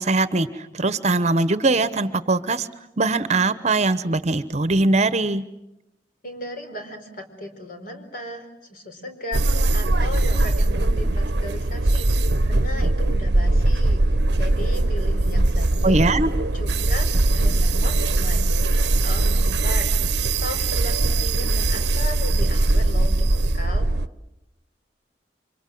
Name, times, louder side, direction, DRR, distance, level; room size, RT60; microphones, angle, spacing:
voice 1, 0.0-2.7 3.0-5.4 15.8-16.3, right 2 dB, 40° right, 14 dB, 1.0 m, -21 dB
voice 2, 6.2-16.0 16.5-23.3 23.5-23.9, left 1 dB, 55° left, 6 dB, 4.6 m, -36 dB
sound 1, 9.3-24.1, right 2 dB, 70° right, 0.9 m, -20 dB
28.5 x 25.5 x 7.8 m, 0.89 s
head